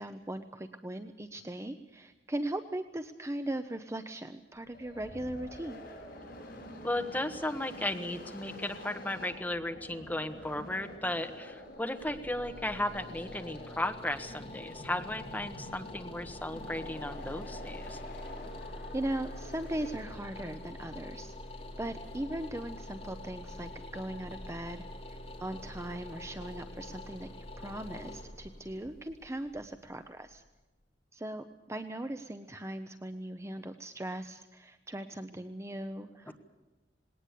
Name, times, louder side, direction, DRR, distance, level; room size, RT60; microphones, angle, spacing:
voice 1, 0.0-5.8 18.9-21.4 21.8-30.4 31.1-36.4, right 1 dB, 15° right, 9 dB, 0.7 m, -39 dB
sound 1, 4.6-20.7, left 1 dB, 55° left, 6.7 m, -48 dB
voice 2, 6.8-18.0, left 1 dB, 10° left, 5 dB, 1.4 m, -35 dB
sound 2, 11.7-30.6, left 1 dB, 35° left, 2.8 m, -45 dB
19.5 x 18.5 x 8.4 m, 1.1 s
head